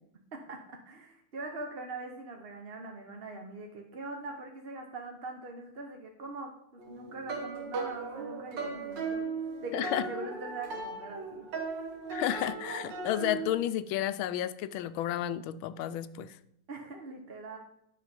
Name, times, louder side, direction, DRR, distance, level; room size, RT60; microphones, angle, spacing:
voice 1, 0.3-9.3 9.6-11.5 16.7-17.6, right 3 dB, 40° right, 2 dB, 0.9 m, -42 dB
sound 1, 6.8-13.5, right 4 dB, 65° right, 1.8 m, -37 dB
voice 2, 9.7-10.1 12.1-16.4, left 12 dB, 85° left, 14 dB, 1.4 m, -32 dB
9.9 x 6.3 x 5.2 m, 0.75 s
omnidirectional pair, 2.2 m